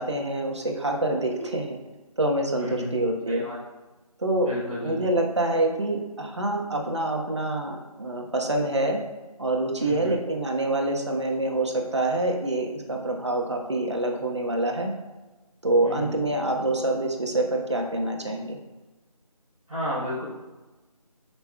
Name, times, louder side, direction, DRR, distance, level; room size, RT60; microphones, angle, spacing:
voice 1, 0.0-1.8 2.2-3.4 4.2-4.5 4.8-9.0 9.4-14.9 15.6-18.6, right 1 dB, 50° right, 1 dB, 1.2 m, -26 dB
voice 2, 2.6-3.0 3.2-3.6 4.4-5.0 9.8-10.1 15.8-16.1 19.7-20.2, left 1 dB, ahead, -25 dB, 0.7 m, -33 dB
13.0 x 5.7 x 2.3 m, 1.2 s
figure-of-eight pair, 170°, 19 cm